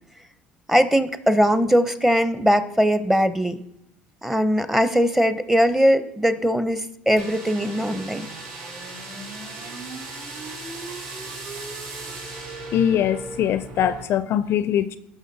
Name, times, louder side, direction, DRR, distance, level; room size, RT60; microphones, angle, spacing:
voice 1, 0.7-3.6 4.2-8.3, equal, 5° right, 12 dB, 0.7 m, -20 dB
sound 1, 7.2-14.0, right 3 dB, 65° right, 2.6 m, -36 dB
voice 2, 12.7-15.0, left 10 dB, 55° left, 14 dB, 0.4 m, -22 dB
14.5 x 6.1 x 2.7 m, 0.79 s
supercardioid pair, 80°, 5 cm